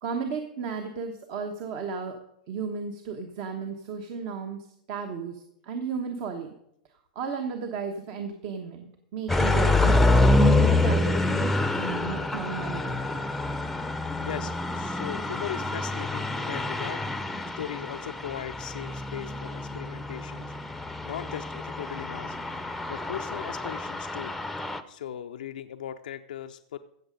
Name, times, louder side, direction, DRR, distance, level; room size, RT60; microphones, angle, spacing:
voice 1, 0.0-2.2 2.5-6.5 7.1-10.1 10.4-13.2, right 5 dB, 50° right, 5 dB, 1.2 m, -34 dB
sound 1, 9.3-24.8, left 2 dB, 5° left, 0.6 m, -26 dB
voice 2, 14.3-17.0 17.6-20.5 21.0-22.4 22.9-24.3 24.9-26.8, left 10 dB, 85° left, 6 dB, 0.5 m, -38 dB
16.0 x 6.7 x 5.2 m, 0.75 s
hypercardioid pair, 130°, 4 cm